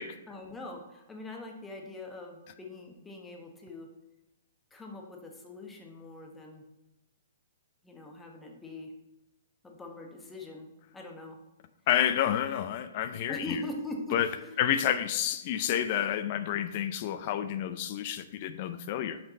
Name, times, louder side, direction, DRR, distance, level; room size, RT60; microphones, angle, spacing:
voice 1, 0.3-3.9 4.7-6.6 7.8-8.9 9.6-10.7 10.9-11.4 13.3-14.6, left 2 dB, 10° left, 1 dB, 1.2 m, -42 dB
voice 2, 11.9-13.6 14.1-14.3 14.6-19.2, left 10 dB, 45° left, 11 dB, 0.5 m, -29 dB
6.1 x 5.1 x 4.1 m, 0.97 s
hypercardioid pair, 130°, 0 cm